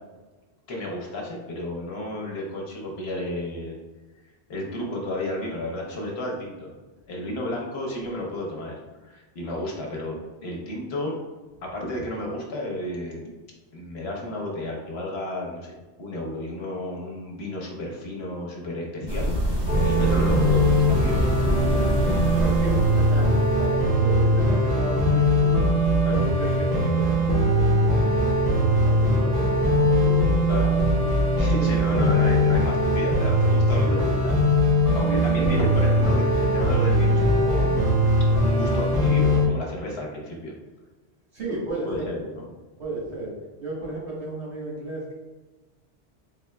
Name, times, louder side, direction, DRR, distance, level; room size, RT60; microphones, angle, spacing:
voice 1, 0.7-3.7 4.5-6.8 7.1-8.8 9.0-11.1 11.6-13.3 13.7-15.7 16.0-21.2 24.0-24.1 26.0-26.2 30.5-30.7 31.4-34.3 34.9-37.8 38.3-40.5 41.8-42.5, left 1 dB, 65° left, -1 dB, 1.1 m, -32 dB
sound 1, 19.1-24.0, equal, 25° right, 0.9 m, -26 dB
sound 2, 19.7-39.5, equal, 55° right, 1.5 m, -21 dB
voice 2, 20.9-25.8 26.2-31.2 31.6-32.3 33.8-34.1 35.0-35.7 41.3-42.2 42.8-45.1, right 1 dB, 75° right, -5 dB, 1.4 m, -34 dB
4.0 x 3.4 x 2.2 m, 1.2 s
omnidirectional pair, 1.2 m